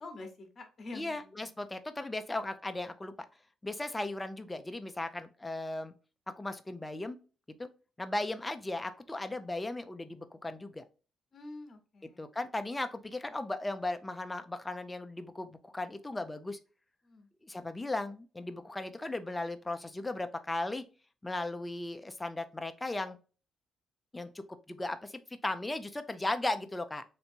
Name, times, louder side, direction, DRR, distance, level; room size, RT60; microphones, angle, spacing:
voice 1, 0.0-1.5 11.3-12.2 17.0-17.3, left 2 dB, 35° left, 5 dB, 1.0 m, -47 dB
voice 2, 0.9-3.1 3.6-5.9 6.4-7.2 7.6-7.7 8.0-10.8 12.2-16.6 17.4-20.8 21.2-23.2 24.1-27.0, left 2 dB, 10° left, 9 dB, 0.4 m, -36 dB
3.3 x 2.8 x 2.7 m, 0.34 s
cardioid pair, 130°, 0 cm